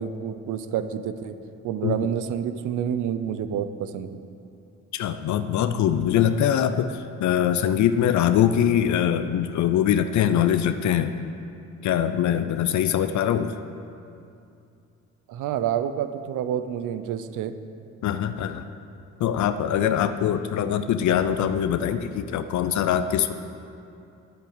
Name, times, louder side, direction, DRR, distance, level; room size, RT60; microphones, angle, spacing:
voice 1, 0.0-1.4 1.6-4.2 15.3-17.5, right 9 dB, 85° right, 11 dB, 0.7 m, -28 dB
voice 2, 4.9-11.1 11.8-13.5 18.0-18.6 19.2-23.3, left 9 dB, 70° left, 10 dB, 0.6 m, -23 dB
9.4 x 8.2 x 8.8 m, 2.6 s
cardioid pair, 90°, 30 cm